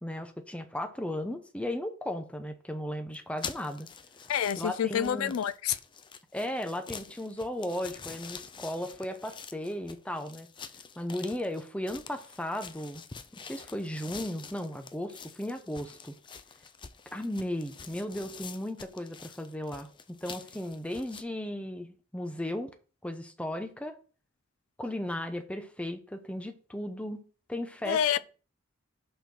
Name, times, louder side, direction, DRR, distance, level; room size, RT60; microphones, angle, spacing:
voice 1, 0.0-3.9 4.6-5.3 6.3-10.5 11.0-13.0 13.3-16.1 17.1-22.7 23.0-23.9 24.8-27.2 27.5-28.2, left 1 dB, 5° left, 0.8 m, -36 dB
sound 1, 3.1-21.2, left 6 dB, 25° left, 0.5 m, -46 dB
voice 2, 4.3-5.8 27.8-28.2, left 9 dB, 85° left, 0.4 m, -28 dB
5.8 x 4.4 x 6.3 m
head